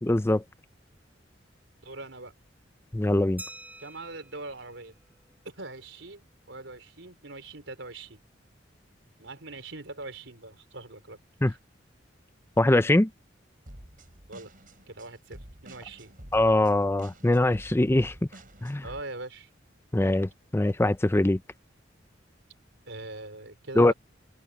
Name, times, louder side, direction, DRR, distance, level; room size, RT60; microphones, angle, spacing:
voice 1, 0.0-0.4 2.9-3.4 11.4-11.5 12.6-13.1 16.3-18.1 18.6-18.8 19.9-21.4 23.8-23.9, left 1 dB, 15° left, 0.5 m, -22 dB
voice 2, 1.8-2.3 3.8-5.0 5.4-8.2 9.2-11.2 11.5-11.6 14.3-14.5 14.9-16.1 18.8-19.5 22.9-23.9, right 2 dB, 80° right, 4.4 m, -42 dB
Glass, 3.4-5.8, right 1 dB, 10° right, 2.9 m, -48 dB
sound 1, 13.7-19.0, right 1 dB, 50° right, 5.8 m, -48 dB
open air
head